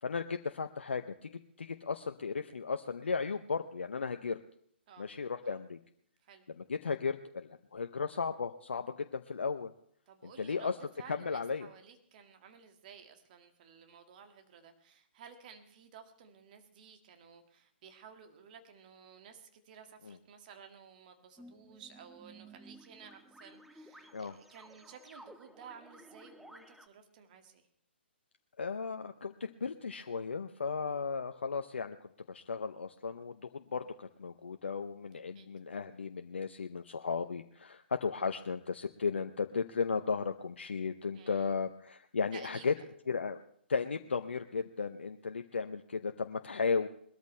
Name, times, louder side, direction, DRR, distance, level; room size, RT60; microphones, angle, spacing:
voice 1, 0.0-4.4 5.0-5.8 6.6-9.7 10.2-10.7 11.1-11.7 20.1-20.2 24.1-24.3 28.6-32.0 32.3-42.7 43.1-43.4 43.7-46.9, left 5 dB, 75° left, 8 dB, 0.7 m, -35 dB
voice 2, 10.1-27.7 35.3-35.5 41.2-41.5 42.3-42.8, right 7 dB, 45° right, 6 dB, 2.0 m, -54 dB
sound 1, 21.4-26.9, right 1 dB, ahead, 0.6 m, -55 dB
21.5 x 13.5 x 3.3 m, 0.65 s
figure-of-eight pair, 130°, 6 cm